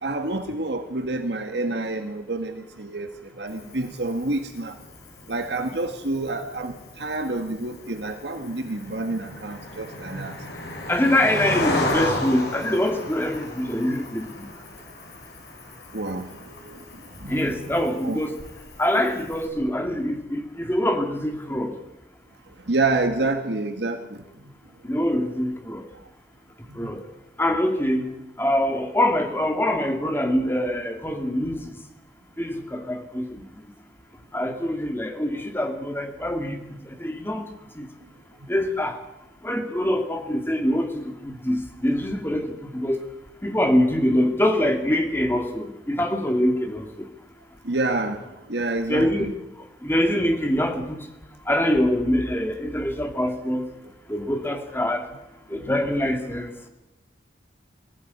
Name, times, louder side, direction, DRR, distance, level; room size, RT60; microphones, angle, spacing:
voice 1, 0.0-4.8 5.3-10.5 15.9-18.2 22.5-24.2 26.7-26.8 47.6-49.3 55.5-55.7, right 2 dB, 70° right, 6 dB, 1.8 m, -28 dB
Cricket, 3.5-19.5, left 1 dB, 65° left, 5.6 m, -34 dB
voice 2, 10.9-14.5 17.3-18.4 18.8-21.7 24.8-25.9 26.8-27.0 27.4-28.0 28.4-31.6 32.4-33.4 34.3-36.6 36.8-37.5 37.7-37.9 38.5-39.0 39.4-43.0 43.4-47.1 48.9-49.4 49.8-51.1 51.5-53.7 54.1-55.1 55.5-56.5, left 1 dB, 10° left, 5 dB, 2.2 m, -24 dB
21.0 x 15.5 x 9.7 m, 0.96 s
head